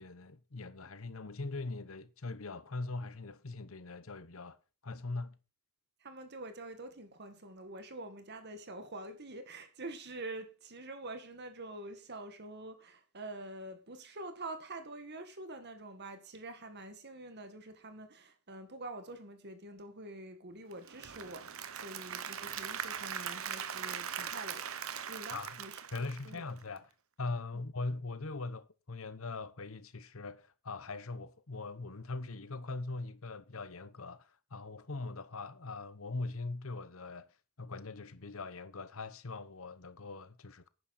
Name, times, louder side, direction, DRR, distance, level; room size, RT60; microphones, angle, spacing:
voice 1, 0.0-4.6 4.8-5.4 25.3-25.6 25.9-26.9 27.2-37.3 37.6-40.7, left 3 dB, 70° left, 1.0 m, -41 dB
voice 2, 6.0-24.7 25.1-25.8 26.2-26.4, right 2 dB, 50° right, 1.9 m, -46 dB
Applause / Crowd, 20.7-26.8, right 8 dB, 70° right, 1.1 m, -41 dB
11.5 x 9.6 x 4.3 m
head